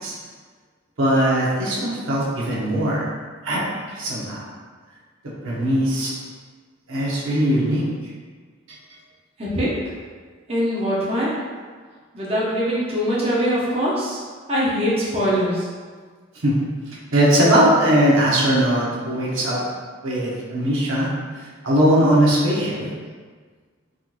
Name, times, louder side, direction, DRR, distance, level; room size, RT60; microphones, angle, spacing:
voice 1, 1.0-3.1 3.4-3.6 3.9-4.5 5.4-6.1 6.9-7.9 16.4-16.6 17.1-19.6 20.0-21.1 21.6-22.9, right 1 dB, 75° right, -5 dB, 0.8 m, -19 dB
voice 2, 9.4-9.7 10.5-11.3 12.1-14.2 14.5-15.7, equal, 30° right, -7 dB, 0.6 m, -22 dB
3.7 x 2.8 x 2.4 m, 1.5 s
head